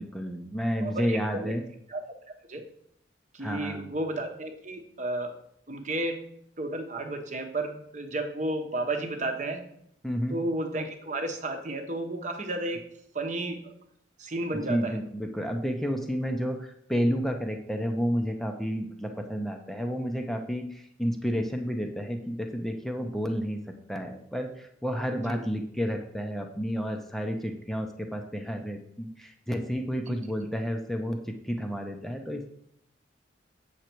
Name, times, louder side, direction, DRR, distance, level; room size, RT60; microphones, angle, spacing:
voice 1, 0.0-1.6 3.4-3.9 10.0-10.4 14.7-23.6 23.9-32.5, equal, ahead, 4 dB, 0.7 m, -31 dB
voice 2, 0.8-1.5 1.9-2.0 2.5-2.6 3.3-5.4 5.7-6.3 6.6-9.7 10.3-12.9 13.1-13.7 14.2-15.0 25.3-25.4 30.1-30.5, right 2 dB, 40° right, 5 dB, 1.0 m, -32 dB
8.0 x 6.4 x 4.5 m, 0.70 s
head